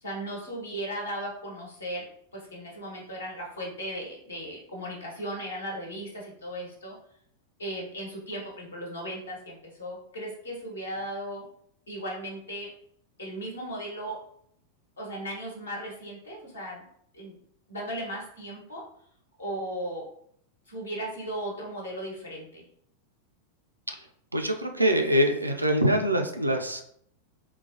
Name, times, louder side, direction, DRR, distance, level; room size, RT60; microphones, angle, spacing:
voice 1, 0.0-2.1 2.3-7.0 7.6-11.5 11.9-12.7 13.2-14.2 15.0-16.8 17.1-17.4 17.7-18.9 19.4-20.1 20.7-22.6, right 1 dB, 75° left, -2 dB, 1.1 m, -36 dB
voice 2, 23.9-26.8, equal, 85° right, 4 dB, 0.4 m, -25 dB
3.8 x 2.5 x 2.6 m, 0.68 s
figure-of-eight pair, 90°, 0 cm